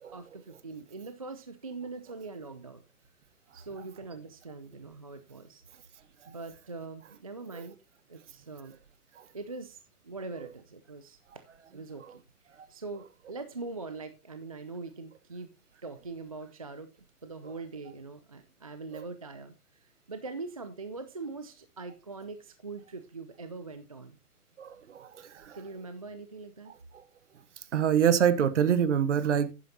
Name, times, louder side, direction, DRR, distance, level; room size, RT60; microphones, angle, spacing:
voice 1, 0.1-2.8 3.5-5.6 6.3-7.8 8.1-8.8 9.3-9.8 10.0-11.4 11.7-15.5 15.8-16.9 17.2-24.2 25.5-26.7, right 3 dB, 25° right, 0.4 m, -42 dB
voice 2, 24.6-25.6 27.7-29.5, right 8 dB, 50° right, 1.1 m, -25 dB
11.0 x 9.4 x 2.8 m
figure-of-eight pair, 140°, 45 cm